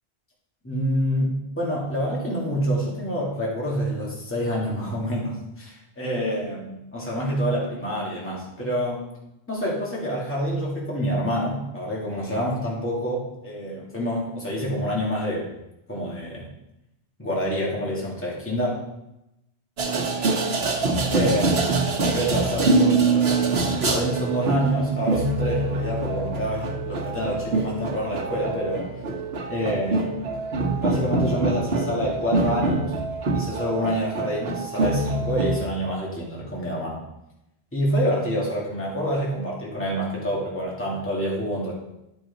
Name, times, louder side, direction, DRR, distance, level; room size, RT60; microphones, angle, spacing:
voice 1, 0.6-9.0 9.5-15.5 15.9-16.5 17.2-18.8 21.1-28.9 29.5-30.2 30.8-33.0 33.3-37.0 37.7-41.7, equal, 10° left, -4 dB, 1.8 m, -27 dB
sound 1, 19.8-35.7, right 3 dB, 75° right, 1.3 m, -25 dB
10.5 x 5.4 x 3.9 m, 0.88 s
omnidirectional pair, 1.1 m